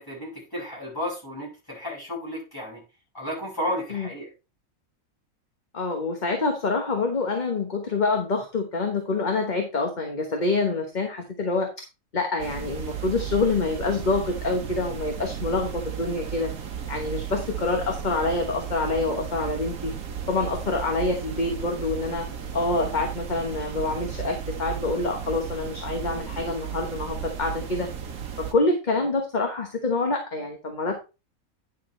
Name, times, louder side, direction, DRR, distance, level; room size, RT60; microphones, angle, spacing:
voice 1, 0.0-2.8 3.1-4.3, equal, 15° left, -5 dB, 6.3 m, -33 dB
voice 2, 5.7-11.7 12.1-16.5 16.9-19.9 20.3-22.3 22.5-27.9 28.5-31.0, left 3 dB, 35° left, 3 dB, 1.2 m, -26 dB
sound 1, 12.4-28.5, right 8 dB, 80° right, 1.6 m, -34 dB
10.0 x 6.7 x 3.3 m, 0.29 s
omnidirectional pair, 1.5 m